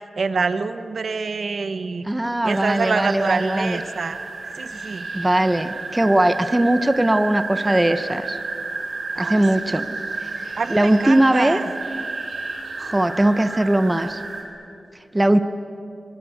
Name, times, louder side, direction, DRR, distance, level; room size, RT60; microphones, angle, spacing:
voice 1, 0.2-2.1 2.4-4.3 4.6-5.1 9.2-9.8 10.6-11.7, right 4 dB, 60° right, 11 dB, 1.0 m, -26 dB
voice 2, 2.0-3.8 5.1-8.4 9.2-9.8 10.2-10.3 10.7-11.6 12.8-14.2 15.1-15.4, right 1 dB, 15° right, 10 dB, 0.8 m, -19 dB
sound 1, 2.4-14.4, right 3 dB, 75° right, 4.2 m, -31 dB
23.5 x 20.0 x 9.2 m, 2.6 s
wide cardioid pair, 140°, 0 cm